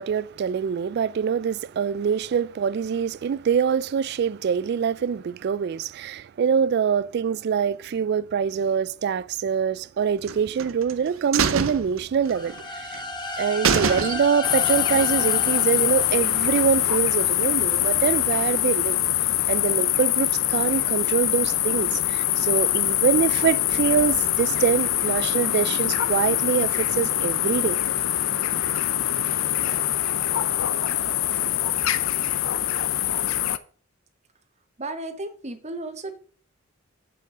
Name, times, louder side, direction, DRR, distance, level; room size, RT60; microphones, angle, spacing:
voice 1, 0.0-13.0 13.4-19.0 19.5-27.8, right 7 dB, 55° right, 0.3 m, -24 dB
sound 1, 10.2-10.9 11.3-12.6 12.9-13.0 13.3-13.4 13.6-14.5 14.9-15.0, right 6 dB, 90° right, 0.7 m, -25 dB
sound 2, 12.2-17.1, left 2 dB, 25° left, 1.3 m, -33 dB
sound 3, 14.4-33.6, left 12 dB, 85° left, 0.6 m, -24 dB
voice 2, 34.8-36.2, right 2 dB, 35° right, 1.1 m, -34 dB
7.6 x 6.5 x 4.9 m
head